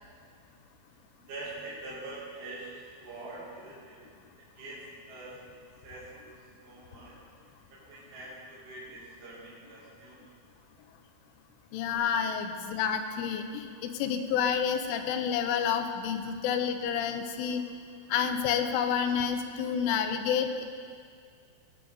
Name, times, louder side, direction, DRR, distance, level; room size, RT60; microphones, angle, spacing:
voice 1, 1.3-2.7 3.0-4.0 4.4-5.4 5.8-7.1 7.7-10.3 12.2-12.5 15.9-16.0, right 2 dB, 45° right, -8 dB, 3.6 m, -44 dB
voice 2, 11.7-17.6 18.1-20.7, left 7 dB, 85° left, 6 dB, 3.1 m, -29 dB
17.5 x 9.1 x 3.9 m, 2.1 s
omnidirectional pair, 5.8 m